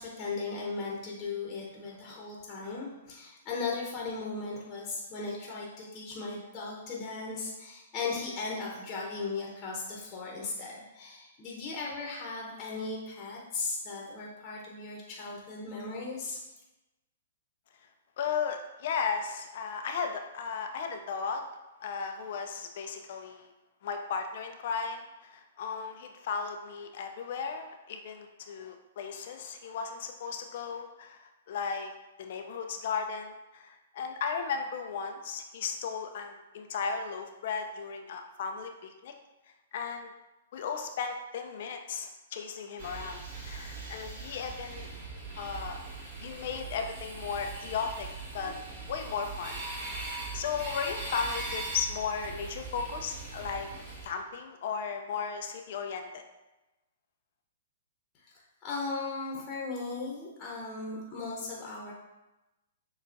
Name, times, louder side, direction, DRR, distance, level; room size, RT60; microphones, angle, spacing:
voice 1, 0.0-16.4 58.1-61.9, left 3 dB, 30° left, -3 dB, 0.9 m, -37 dB
voice 2, 18.2-21.5 21.8-23.5 23.8-31.9 32.2-39.1 39.7-40.1 40.5-44.9 45.4-45.8 46.2-48.1 48.3-48.5 48.9-49.6 50.0-53.7 54.0-56.2, left 6 dB, 55° left, 4 dB, 0.4 m, -35 dB
sound 1, 42.8-54.1, right 3 dB, 35° right, 1.4 m, -40 dB
6.5 x 2.3 x 2.6 m, 1.0 s
hypercardioid pair, 120°, 0 cm